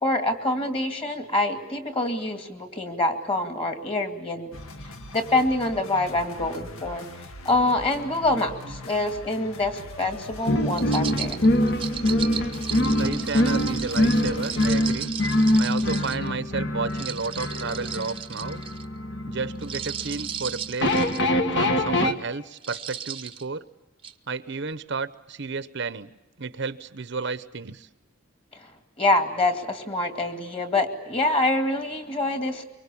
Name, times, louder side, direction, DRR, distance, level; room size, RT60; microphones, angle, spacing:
voice 1, 0.0-11.4 28.5-28.7 29.0-32.6, left 2 dB, 25° left, 7 dB, 2.3 m, -26 dB
sound 1, 4.5-14.8, left 1 dB, 85° left, 1.7 m, -41 dB
sound 2, 10.5-22.1, left 1 dB, 55° left, 1.4 m, -24 dB
sound 3, 10.8-16.3 16.9-18.8 19.6-21.3 21.8-22.0 22.5-23.4 24.0-24.1, right 9 dB, 25° right, 0.8 m, -36 dB
voice 2, 13.0-15.1 15.6-18.6 19.3-21.1 21.5-23.7 24.3-27.9, right 4 dB, 55° right, 14 dB, 0.8 m, -32 dB
24.0 x 24.0 x 8.5 m, 1.0 s
head